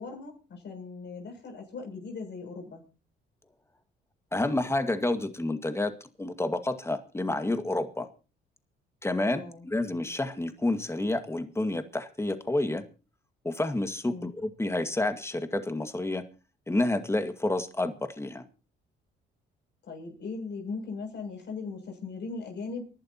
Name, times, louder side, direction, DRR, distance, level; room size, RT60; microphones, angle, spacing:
voice 1, 0.0-2.8 9.3-9.7 14.1-14.3 19.8-22.9, left 4 dB, 60° left, 2 dB, 7.6 m, -39 dB
voice 2, 4.3-5.9 6.2-8.1 9.0-12.8 13.4-16.2 16.7-18.4, left 2 dB, 15° left, 8 dB, 1.9 m, -29 dB
28.0 x 11.5 x 3.0 m, 0.34 s
cardioid pair, 90°, 20 cm